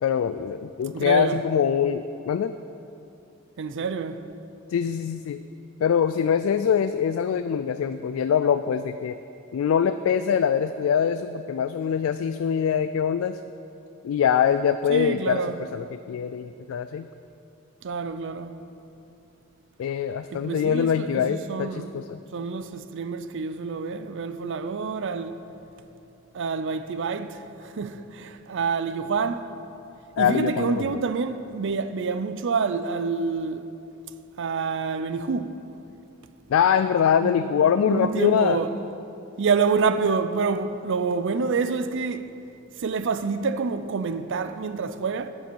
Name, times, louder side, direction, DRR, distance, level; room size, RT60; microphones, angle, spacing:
voice 1, 0.0-2.5 4.7-5.4 5.8-9.2 9.5-13.4 14.0-15.4 15.7-17.1 19.8-22.2 30.2-30.9 36.5-38.6, left 7 dB, 75° left, 0.3 m, -23 dB
voice 2, 0.9-1.4 3.6-4.2 14.9-15.6 17.8-18.6 20.3-21.9 22.3-25.4 26.3-29.5 30.2-33.7 34.4-35.5 37.2-38.7 39.4-42.3 42.8-45.3, right 5 dB, 65° right, 0.5 m, -27 dB
12.5 x 7.6 x 4.5 m
head